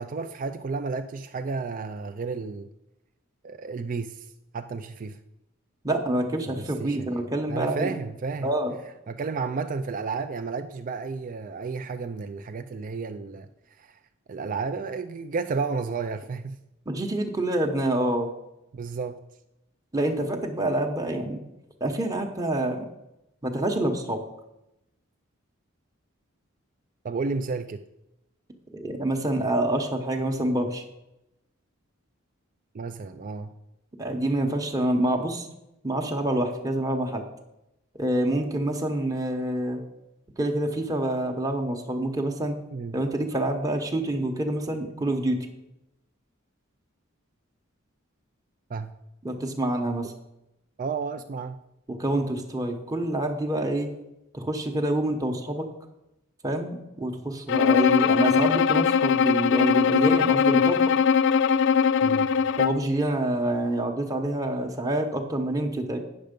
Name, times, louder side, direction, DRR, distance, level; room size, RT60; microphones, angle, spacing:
voice 1, 0.0-2.7 3.4-5.2 6.5-7.2 7.5-8.5 9.1-13.5 13.8-14.0 14.3-16.6 18.7-19.2 27.0-27.8 32.7-33.5 42.7-43.0 48.7-48.9 50.8-51.6 62.0-62.3, right 4 dB, 40° right, 8 dB, 0.4 m, -32 dB
voice 2, 5.8-7.9 8.4-8.7 16.9-18.3 19.9-21.4 21.8-22.9 23.4-24.2 28.7-30.8 34.0-35.5 35.8-37.2 38.0-39.8 40.4-42.5 42.9-45.4 49.2-50.1 51.9-53.9 54.3-55.7 56.4-60.8 62.6-66.0, right 1 dB, 15° right, 2 dB, 0.9 m, -27 dB
Bowed string instrument, 57.5-62.9, left 6 dB, 60° left, 0.4 m, -21 dB
9.0 x 6.5 x 5.2 m, 0.88 s
head